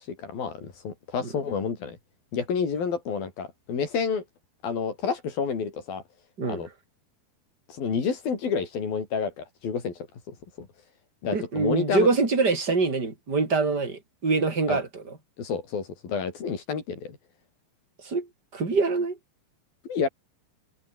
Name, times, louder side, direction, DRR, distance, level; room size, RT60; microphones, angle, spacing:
voice 1, 0.0-2.0 2.3-4.2 4.6-6.0 6.4-6.7 7.7-10.7 11.2-12.1 14.7-14.8 15.4-17.2 19.9-20.1, left 6 dB, 55° left, 6.0 m, -29 dB
voice 2, 11.3-15.2 18.0-19.2, right 4 dB, 20° right, 5.2 m, -25 dB
omnidirectional pair, 5.0 m